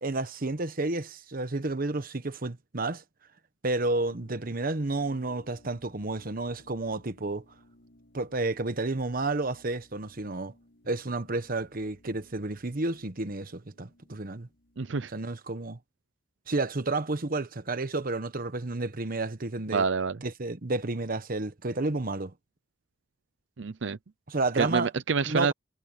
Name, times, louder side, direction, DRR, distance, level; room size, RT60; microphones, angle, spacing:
voice 1, 0.0-3.0 3.6-7.4 8.1-10.5 10.8-14.5 15.1-15.8 16.5-19.8 20.2-22.3 24.3-24.9 25.2-25.5, right 2 dB, 50° right, 1.2 m, -31 dB
sound 1, 4.0-14.9, left 1 dB, 75° left, 5.6 m, -60 dB
voice 2, 14.8-15.1 19.7-20.2 23.6-24.0 24.5-25.5, right 5 dB, 75° right, 0.6 m, -27 dB
head